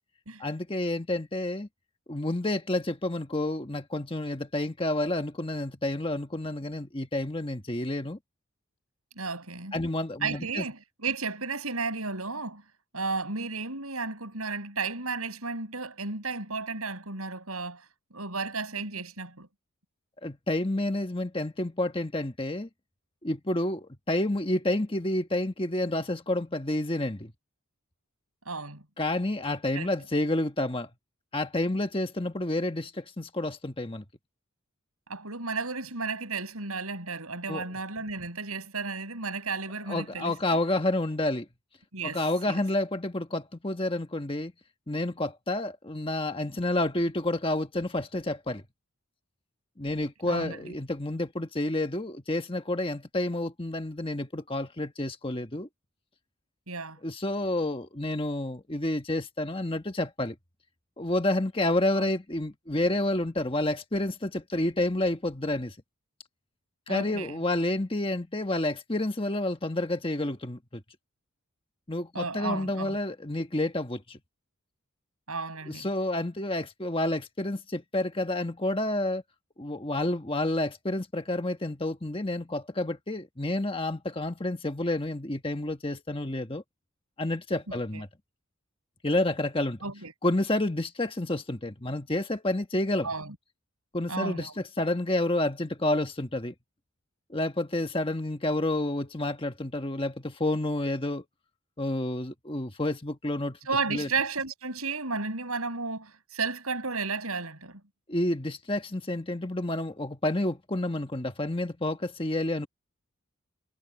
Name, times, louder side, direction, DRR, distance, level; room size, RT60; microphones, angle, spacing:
voice 1, 0.4-1.7 2.1-8.2 9.7-10.6 20.2-22.7 23.2-27.3 29.0-30.9 31.3-34.0 37.5-37.6 39.9-41.5 42.0-44.5 44.9-48.6 49.8-55.7 57.0-60.3 61.0-65.7 66.9-70.8 71.9-74.2 75.7-79.2 79.6-86.6 87.2-88.1 89.0-89.8 90.2-93.1 93.9-96.5 97.3-101.2 101.8-103.6 103.9-104.1 108.1-112.7, left 1 dB, 25° left, 1.4 m, -29 dB
voice 2, 9.1-9.7 10.2-12.6 12.9-17.8 18.1-19.5 28.4-28.8 29.7-29.9 35.1-40.6 41.9-42.2 42.5-42.6 50.2-50.7 56.7-57.0 61.9-62.1 66.9-67.4 72.1-73.0 75.3-75.9 87.7-88.0 89.8-90.1 93.0-93.3 94.1-94.6 103.7-107.8, right 4 dB, 80° right, 6.7 m, -33 dB
head